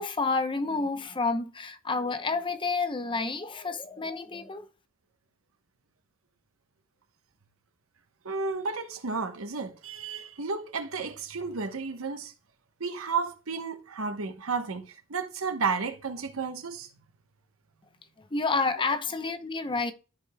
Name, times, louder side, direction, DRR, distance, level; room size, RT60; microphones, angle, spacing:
voice 1, 0.0-4.7 18.3-19.9, left 4 dB, 25° left, 0.7 m, -29 dB
voice 2, 8.2-12.3 12.8-16.9, right 4 dB, 85° right, 1.0 m, -32 dB
14.0 x 4.9 x 2.2 m
head